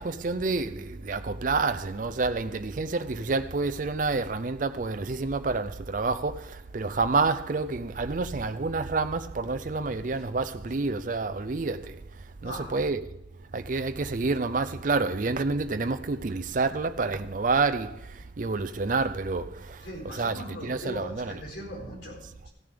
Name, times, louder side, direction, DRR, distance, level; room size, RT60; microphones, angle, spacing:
voice 1, 0.0-13.0 13.5-21.4, right 3 dB, 45° right, 0.5 m, -29 dB
voice 2, 12.4-12.8 19.8-22.5, equal, 65° left, 4.2 m, -40 dB
15.5 x 6.9 x 5.1 m
head